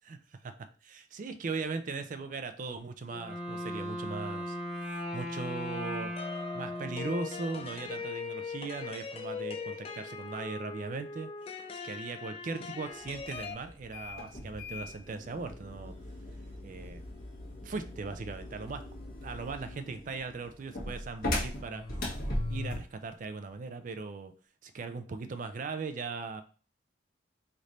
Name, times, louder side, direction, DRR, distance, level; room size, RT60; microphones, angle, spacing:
voice 1, 0.1-4.6 4.8-6.1 6.5-11.3 11.8-16.0 16.6-17.0 17.6-18.9 19.2-21.9 22.5-24.3 24.6-26.4, right 4 dB, 45° right, 9 dB, 0.4 m, -39 dB
Wind instrument woodwind instrument, 3.1-7.9, left 1 dB, 5° right, 1.0 m, -38 dB
sound 1, 6.2-13.5, left 5 dB, 30° left, 0.4 m, -40 dB
sound 2, 13.0-22.9, left 1 dB, 50° left, 1.2 m, -39 dB
3.2 x 2.6 x 4.1 m, 0.39 s
head